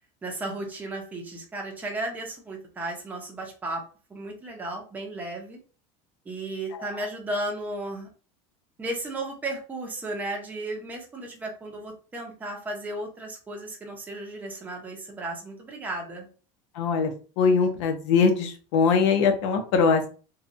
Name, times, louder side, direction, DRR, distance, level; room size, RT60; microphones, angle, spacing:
voice 1, 0.2-3.8 4.1-5.6 6.3-8.1 8.8-16.3, right 2 dB, 10° right, 1 dB, 0.6 m, -34 dB
voice 2, 16.7-20.1, left 5 dB, 80° left, 6 dB, 0.7 m, -22 dB
2.9 x 2.2 x 2.5 m, 0.37 s
cardioid pair, 160°, 15 cm